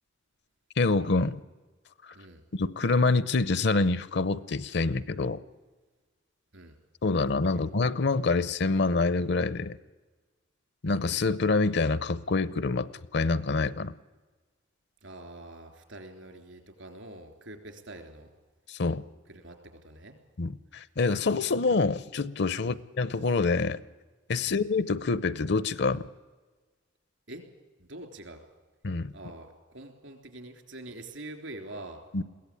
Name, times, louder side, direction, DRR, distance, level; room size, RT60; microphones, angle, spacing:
voice 1, 0.8-1.4 2.5-5.4 7.0-9.8 10.8-13.9 18.7-19.0 20.4-23.8 24.3-26.1 28.8-29.1 32.1-32.2, left 3 dB, 60° left, 17 dB, 0.6 m, -26 dB
voice 2, 15.0-18.3 19.3-19.6 19.8-20.2 22.6-22.8 24.4-24.6 27.3-27.4 27.8-28.4 29.1-32.0, right 1 dB, 75° right, 5 dB, 3.5 m, -45 dB
22.0 x 16.5 x 8.6 m, 1.3 s
head